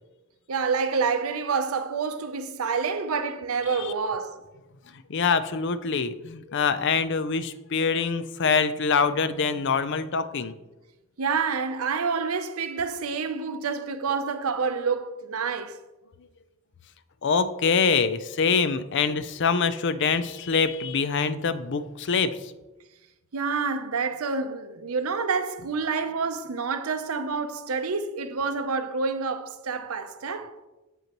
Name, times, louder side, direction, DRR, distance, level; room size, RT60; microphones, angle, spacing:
voice 1, 0.5-4.4 11.2-15.8 23.3-30.5, right 5 dB, 80° right, 0.6 m, -28 dB
voice 2, 5.1-10.5 17.2-22.5, left 5 dB, 55° left, 0.5 m, -25 dB
8.0 x 7.9 x 3.0 m
head